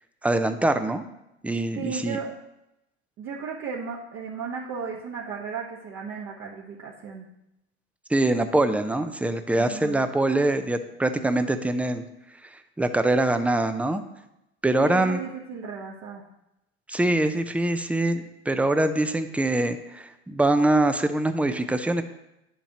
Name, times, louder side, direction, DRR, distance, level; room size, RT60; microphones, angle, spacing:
voice 1, 0.2-1.0 1.4-2.2 8.1-12.0 12.8-14.0 14.6-15.2 16.9-22.0, right 2 dB, 5° right, 9 dB, 0.5 m, -23 dB
voice 2, 1.7-2.3 3.2-7.3 9.6-10.0 14.8-16.2, right 6 dB, 45° right, -4 dB, 1.3 m, -35 dB
9.8 x 7.3 x 2.9 m, 0.87 s
hypercardioid pair, 85°, 35 cm